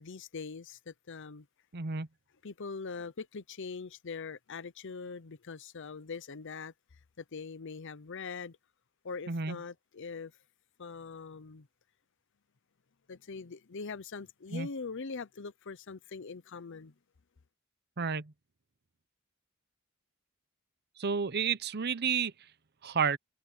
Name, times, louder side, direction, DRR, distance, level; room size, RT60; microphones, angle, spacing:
voice 1, 0.0-1.5 2.4-6.7 7.2-8.6 9.0-10.3 10.8-11.7 13.1-16.9, left 4 dB, 60° left, 0.7 m, -42 dB
voice 2, 1.7-2.1 9.3-9.6 14.5-14.7 18.0-18.3 21.0-22.3 22.8-23.2, right 6 dB, 50° right, 0.8 m, -31 dB
head